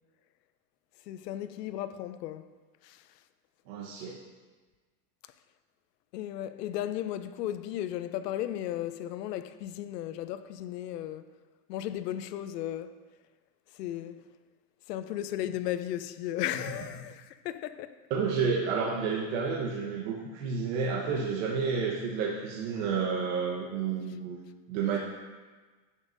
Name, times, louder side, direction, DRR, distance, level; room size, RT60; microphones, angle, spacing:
voice 1, 1.1-2.5 2.8-3.0 6.1-11.2 11.7-13.0 13.7-14.3 14.9-18.0, left 12 dB, 85° left, 0.7 m, -35 dB
voice 2, 3.7-4.2 18.1-24.4 24.7-25.0, right 5 dB, 55° right, 1.2 m, -30 dB
11.0 x 8.2 x 2.6 m
supercardioid pair, 150°, 47 cm